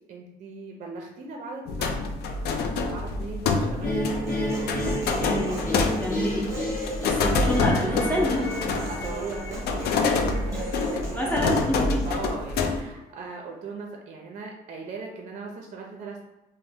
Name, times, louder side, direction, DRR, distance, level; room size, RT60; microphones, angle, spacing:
voice 1, 0.1-4.5 5.2-5.7 7.1-7.5 8.0-8.2 8.9-11.4 12.0-16.2, right 4 dB, 45° right, 1 dB, 0.5 m, -39 dB
sound 1, 1.7-12.8, left 3 dB, 70° left, 0.4 m, -27 dB
sound 2, 3.8-10.9, left 1 dB, 55° left, 0.8 m, -32 dB
Human voice, 4.1-12.1, equal, 20° right, 0.9 m, -38 dB
voice 2, 5.2-5.6 6.0-6.5 7.0-8.5 10.5-10.7 11.1-12.1, equal, 10° left, -4 dB, 0.6 m, -27 dB
2.6 x 2.1 x 3.4 m, 0.99 s
cardioid pair, 110°, 17 cm